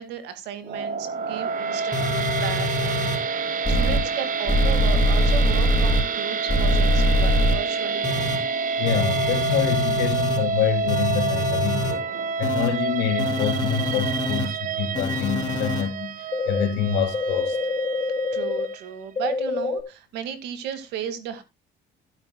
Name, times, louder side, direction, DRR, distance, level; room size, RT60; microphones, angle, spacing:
voice 1, 0.0-3.1 3.4-8.4 18.3-21.4, right 8 dB, 90° right, 2.0 m, -35 dB
sound 1, 0.6-18.9, right 4 dB, 50° right, 1.0 m, -28 dB
sound 2, 1.9-3.2 3.6-4.0 4.5-6.0 6.5-7.5 8.0-8.4 8.9-10.4 10.9-11.9 12.4-12.7 13.2-14.5 14.9-15.8 16.3-16.6 17.1-18.7 19.2-19.8, left 1 dB, 25° left, 3.9 m, -24 dB
voice 2, 8.8-12.0 12.4-17.6, left 7 dB, 90° left, 2.4 m, -26 dB
16.0 x 8.9 x 2.2 m
cardioid pair, 110°, 17 cm